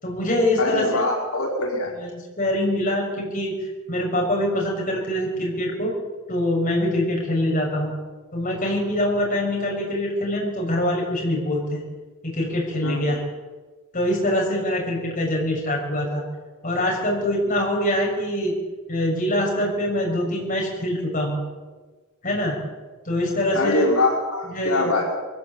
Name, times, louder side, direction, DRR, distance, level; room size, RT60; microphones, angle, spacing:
voice 1, 0.0-1.0 2.0-3.5 3.9-5.9 6.3-7.9 8.3-11.9 12.2-13.2 13.9-16.2 16.6-18.5 18.9-21.4 22.2-22.6 23.0-23.9 24.4-24.9, left 1 dB, 40° left, -2 dB, 6.6 m, -24 dB
voice 2, 0.6-1.9 12.8-13.1 23.5-25.0, left 2 dB, 80° left, -1 dB, 5.4 m, -23 dB
23.0 x 16.5 x 8.5 m, 1.3 s
head